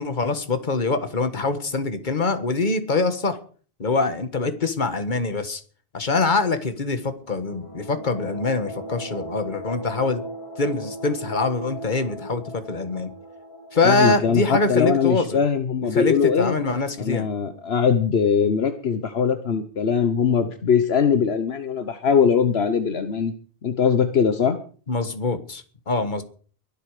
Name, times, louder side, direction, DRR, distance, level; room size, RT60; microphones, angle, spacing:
voice 1, 0.0-3.4 3.8-5.6 5.9-10.2 10.6-13.1 13.7-15.4 15.9-17.3 24.9-26.2, left 3 dB, 50° left, 10 dB, 1.7 m, -24 dB
sound 1, 7.2-15.8, right 1 dB, 30° left, 4.0 m, -38 dB
voice 2, 13.8-16.5 17.0-23.3 23.6-24.6, left 6 dB, 75° left, 9 dB, 1.2 m, -21 dB
22.5 x 8.4 x 4.9 m, 0.41 s
omnidirectional pair, 1.1 m